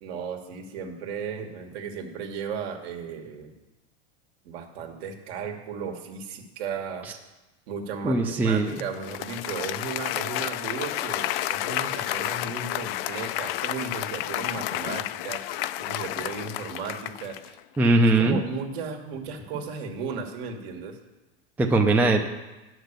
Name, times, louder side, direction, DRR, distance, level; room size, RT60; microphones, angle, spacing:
voice 1, 0.0-3.5 4.5-7.1 7.7-17.6 18.0-21.0, right 5 dB, 65° right, 3 dB, 1.7 m, -35 dB
voice 2, 8.0-8.8 17.8-18.4 21.6-22.3, right 2 dB, 5° right, 3 dB, 0.4 m, -20 dB
Applause, 8.7-17.6, left 14 dB, 60° left, 0.5 m, -31 dB
9.8 x 6.1 x 6.7 m, 1.1 s
supercardioid pair, 135°, 33 cm